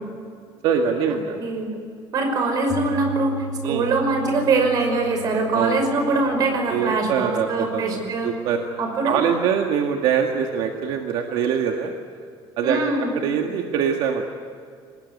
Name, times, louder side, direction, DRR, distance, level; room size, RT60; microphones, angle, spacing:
voice 1, 0.6-1.4 3.6-3.8 5.5-5.7 6.7-8.6 9.0-11.9 12.6-12.8 13.1-14.2, right 7 dB, 70° right, 3 dB, 1.8 m, -23 dB
voice 2, 1.4-1.7 2.1-8.3 8.8-9.2 12.6-13.1, right 3 dB, 45° right, 4 dB, 5.5 m, -23 dB
Piano, 2.7-10.8, right 2 dB, 85° left, 2.3 m, -38 dB
24.5 x 20.0 x 9.6 m, 2.2 s
cardioid pair, 180°, 9 cm